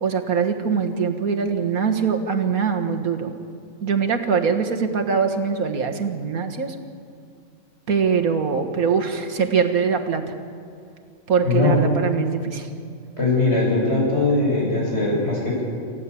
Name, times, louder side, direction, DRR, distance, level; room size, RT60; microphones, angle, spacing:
voice 1, 0.0-3.4 3.8-6.8 7.9-10.2 11.3-12.7, right 6 dB, 90° right, 4 dB, 2.0 m, -22 dB
voice 2, 13.2-15.6, left 3 dB, 50° left, -4 dB, 7.9 m, -20 dB
28.5 x 14.5 x 8.6 m, 2.3 s
omnidirectional pair, 1.5 m